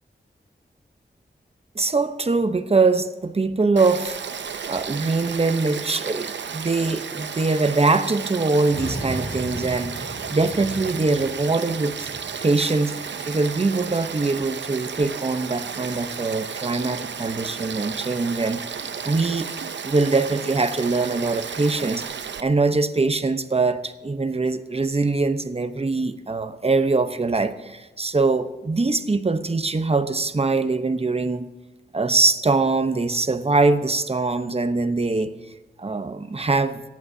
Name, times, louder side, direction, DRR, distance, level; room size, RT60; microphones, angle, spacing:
voice 1, 1.7-4.2 4.7-12.1 12.4-19.5 19.8-31.5 31.9-35.3 35.8-36.8, right 3 dB, 35° right, 10 dB, 0.9 m, -23 dB
Frog / Stream, 3.8-22.4, right 6 dB, 75° right, 0.6 m, -33 dB
sound 1, 8.4-14.7 15.2-16.1, equal, 50° left, 5.8 m, -38 dB
29.5 x 10.5 x 2.8 m, 1.2 s
wide cardioid pair, 90°, 19 cm